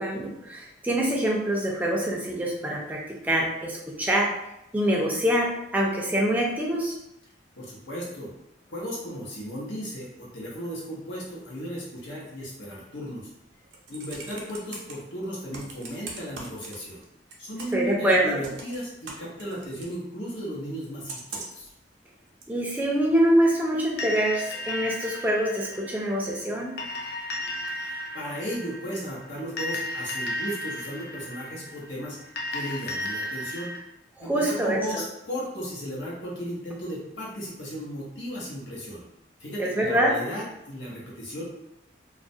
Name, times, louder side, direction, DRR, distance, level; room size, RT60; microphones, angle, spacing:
voice 1, 0.0-4.3 4.7-6.9 17.7-18.4 22.5-26.7 34.2-35.0 39.6-40.1, right 1 dB, 10° right, -2 dB, 0.3 m, -25 dB
voice 2, 7.5-8.3 8.7-13.3 13.9-17.0 17.4-21.7 27.7-33.7 34.2-39.0 39.4-41.5, equal, 85° left, -5 dB, 0.9 m, -35 dB
Computer keyboard, 13.5-14.9 15.5-17.0 17.3-17.9 18.4-19.9 21.1-21.7 22.4-22.5, right 3 dB, 80° right, 0.5 m, -40 dB
sound 1, 24.0-33.8, left 1 dB, 60° left, 0.4 m, -34 dB
2.3 x 2.0 x 2.6 m, 0.88 s
head